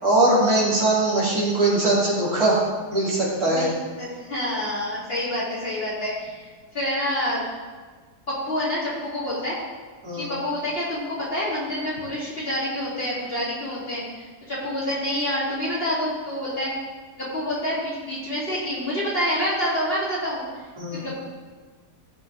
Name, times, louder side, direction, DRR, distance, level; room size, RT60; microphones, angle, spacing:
voice 1, 0.0-2.6 2.9-3.7 10.0-10.3 20.8-21.0, right 2 dB, 65° right, -7 dB, 3.9 m, -21 dB
voice 2, 4.0-6.5 6.7-7.4 8.3-9.6 10.2-16.7 17.2-20.4 20.9-21.2, left 1 dB, 35° left, -8 dB, 3.6 m, -27 dB
17.0 x 6.6 x 3.7 m, 1.4 s
omnidirectional pair, 1.7 m